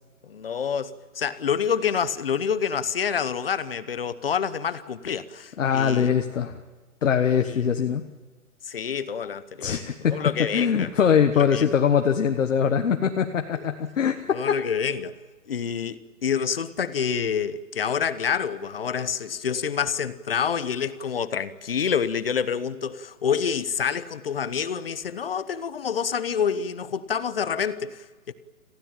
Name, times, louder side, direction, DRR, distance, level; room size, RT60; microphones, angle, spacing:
voice 1, 0.2-6.1 7.5-7.7 8.6-9.7 10.1-10.9 11.5-11.7 14.3-15.1 15.5-28.3, left 7 dB, 40° left, 1.0 m, -27 dB
voice 2, 5.6-6.5 7.0-8.0 9.6-14.6, left 7 dB, 60° left, 1.4 m, -22 dB
26.5 x 16.0 x 8.9 m
hypercardioid pair, 170°, 43 cm